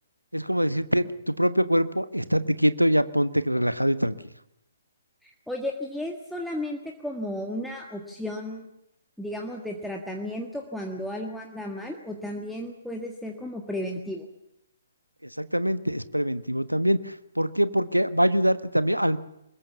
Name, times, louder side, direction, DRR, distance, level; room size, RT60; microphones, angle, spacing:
voice 1, 0.3-4.1 15.2-19.2, equal, 90° right, 13 dB, 1.3 m, -24 dB
voice 2, 5.2-8.7 9.2-14.2, left 1 dB, ahead, 0 dB, 1.7 m, -34 dB
24.0 x 21.5 x 7.2 m, 0.83 s
figure-of-eight pair, 130°, 0 cm